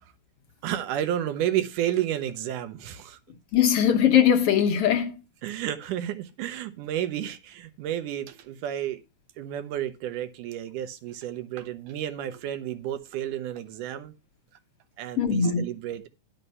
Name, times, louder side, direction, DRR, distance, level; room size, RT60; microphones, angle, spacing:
voice 1, 0.6-3.2 5.4-9.0 9.4-14.1 15.0-16.1, right 11 dB, 90° right, 2.6 m, -31 dB
voice 2, 3.5-5.2 15.2-15.6, left 8 dB, 65° left, 1.6 m, -20 dB
11.0 x 5.9 x 5.5 m
omnidirectional pair, 3.5 m